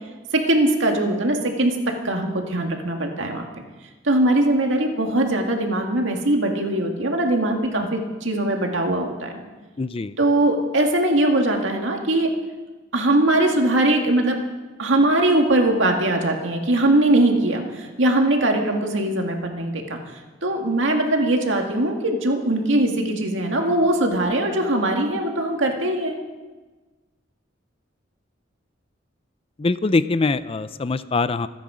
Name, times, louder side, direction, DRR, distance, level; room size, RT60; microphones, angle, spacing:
voice 1, 0.3-1.8 2.0-3.4 4.0-9.3 10.2-12.3 12.9-14.4 14.8-26.2, right 1 dB, 80° right, 2 dB, 2.0 m, -21 dB
voice 2, 9.8-10.2 29.6-31.5, left 3 dB, 30° left, 14 dB, 0.4 m, -23 dB
25.5 x 9.4 x 5.0 m, 1.3 s
head